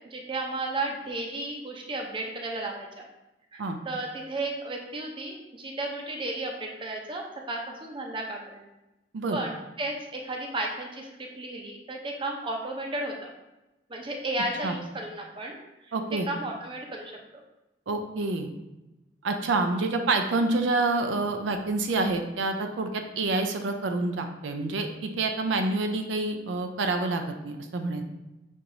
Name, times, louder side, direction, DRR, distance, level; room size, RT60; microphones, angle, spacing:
voice 1, 0.0-3.0 3.5-8.7 9.3-13.3 13.9-15.9 16.3-17.4, right 2 dB, 30° right, 1 dB, 0.6 m, -34 dB
voice 2, 15.9-16.3 17.9-18.5 19.2-28.0, right 3 dB, 90° right, 5 dB, 0.5 m, -27 dB
6.3 x 2.9 x 2.6 m, 0.99 s
head